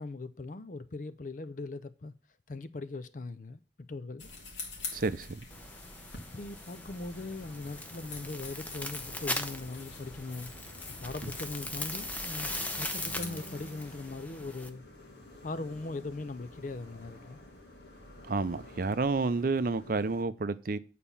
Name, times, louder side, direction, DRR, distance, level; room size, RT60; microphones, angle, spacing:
voice 1, 0.0-2.1 2.5-3.6 3.9-4.3 6.3-10.5 11.0-12.5 12.8-14.8 15.4-17.4, left 3 dB, 45° left, 0.5 m, -40 dB
sound 1, 4.2-13.3, left 3 dB, 90° left, 2.2 m, -46 dB
voice 2, 4.9-5.4 18.3-20.8, right 3 dB, 50° right, 0.5 m, -30 dB
sound 2, 5.5-14.7, left 1 dB, 10° left, 0.7 m, -40 dB
sound 3, 7.1-20.2, left 1 dB, 70° left, 2.2 m, -51 dB
9.0 x 4.2 x 7.0 m
head